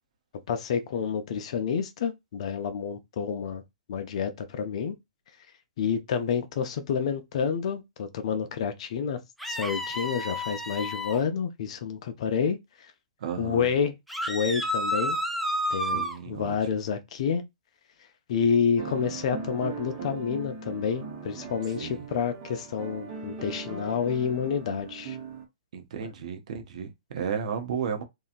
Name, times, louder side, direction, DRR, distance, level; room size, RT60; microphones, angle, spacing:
voice 1, 0.5-3.6 3.9-4.9 5.8-9.2 9.5-12.6 13.4-13.9 14.3-15.2 15.7-17.4 18.3-25.2, left 7 dB, 55° left, 0.6 m, -29 dB
sound 1, 9.4-11.2 14.1-16.2, equal, ahead, 0.3 m, -30 dB
voice 2, 13.2-13.7 15.8-16.6 21.8-22.1 25.7-28.0, right 7 dB, 60° right, 0.8 m, -33 dB
sound 2, 18.8-25.5, right 5 dB, 30° right, 0.8 m, -39 dB
2.8 x 2.3 x 2.5 m
hypercardioid pair, 145°, 4 cm